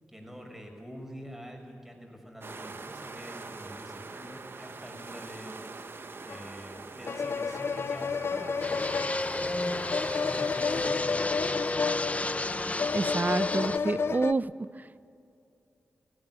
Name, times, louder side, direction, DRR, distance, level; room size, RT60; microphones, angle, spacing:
voice 1, 0.1-5.6 6.2-9.9 10.3-11.4, equal, 5° right, 2 dB, 6.3 m, -45 dB
sound 1, 2.4-10.9, right 3 dB, 55° right, 1.3 m, -44 dB
sound 2, 6.3-6.4 7.0-14.3, left 5 dB, 60° left, 0.5 m, -31 dB
Fixed-wing aircraft airplane, 8.6-13.8, left 2 dB, 30° left, 1.1 m, -31 dB
voice 2, 12.9-14.5, right 3 dB, 40° right, 15 dB, 0.8 m, -28 dB
19.5 x 16.0 x 9.7 m, 2.6 s
cardioid pair, 45°, 5 cm